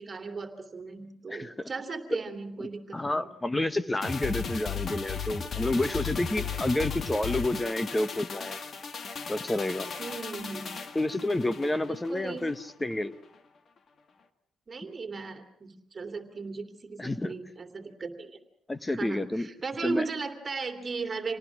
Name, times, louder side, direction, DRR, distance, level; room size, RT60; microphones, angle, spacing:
voice 1, 0.0-3.3 10.0-10.8 11.9-12.5 14.7-18.4 18.9-21.4, right 4 dB, 35° right, 5 dB, 2.8 m, -37 dB
voice 2, 1.3-1.7 2.9-8.6 9.3-9.9 10.9-13.1 17.0-17.3 18.7-19.5 19.8-20.0, left 1 dB, 15° left, 14 dB, 1.0 m, -29 dB
sound 1, 4.0-12.6 12.9-13.0, left 6 dB, 50° left, 1.8 m, -36 dB
27.0 x 18.5 x 6.1 m, 0.75 s
cardioid pair, 90°, 0 cm